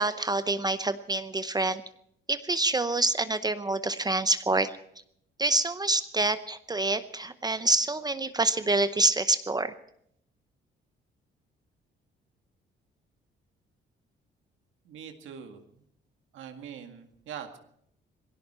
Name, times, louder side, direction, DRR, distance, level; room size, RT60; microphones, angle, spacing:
voice 1, 0.0-1.8 2.3-4.7 5.4-9.7, right 2 dB, 20° right, 12 dB, 0.7 m, -26 dB
voice 2, 14.8-15.9 16.3-17.6, right 8 dB, 80° right, 5 dB, 2.0 m, -43 dB
19.5 x 16.5 x 4.3 m, 0.71 s
cardioid pair, 90°, 20 cm